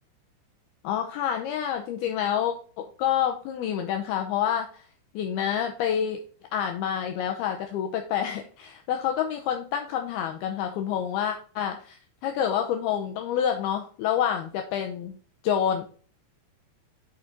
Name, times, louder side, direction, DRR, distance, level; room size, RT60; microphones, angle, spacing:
voice 1, 0.8-4.9 5.1-6.2 6.5-15.2 15.4-15.8, left 9 dB, 90° left, 4 dB, 2.2 m, -28 dB
6.5 x 5.9 x 3.9 m, 0.43 s
omnidirectional pair, 5.3 m